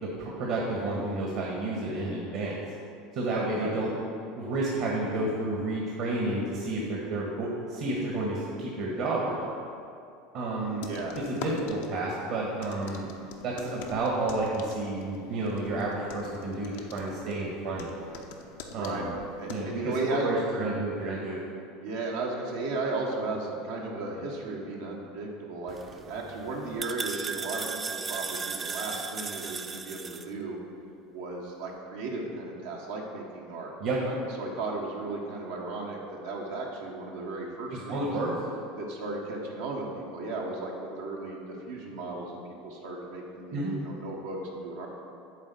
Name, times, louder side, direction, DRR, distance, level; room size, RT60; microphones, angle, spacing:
voice 1, 0.0-2.6 3.1-3.9 4.4-9.5 10.3-10.9 11.3-13.1 13.4-17.9 18.7-19.2 19.5-21.4 33.8-34.0 37.7-38.3 43.5-43.7, right 2 dB, 60° right, -3 dB, 1.5 m, -31 dB
voice 2, 3.3-3.7 10.9-11.2 11.5-11.6 18.8-19.1 19.4-20.3 21.8-30.6 31.1-33.7 34.0-38.1 38.8-44.9, right 3 dB, 80° right, -3 dB, 1.3 m, -35 dB
sound 1, 10.8-19.7, left 5 dB, 75° left, 0.8 m, -45 dB
sound 2, 25.7-30.3, right 5 dB, 25° right, 0.4 m, -36 dB
8.3 x 4.1 x 7.1 m, 2.6 s
hypercardioid pair, 90°, 0 cm